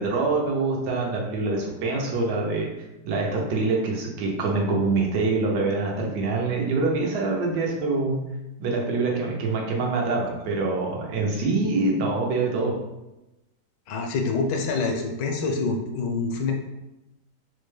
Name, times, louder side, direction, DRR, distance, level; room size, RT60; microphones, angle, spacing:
voice 1, 0.0-2.7 3.0-8.2 8.6-12.8, right 3 dB, 75° right, -1 dB, 1.3 m, -25 dB
voice 2, 13.9-16.5, left 4 dB, 85° left, 3 dB, 1.2 m, -26 dB
4.2 x 2.2 x 3.1 m, 0.96 s
omnidirectional pair, 1.9 m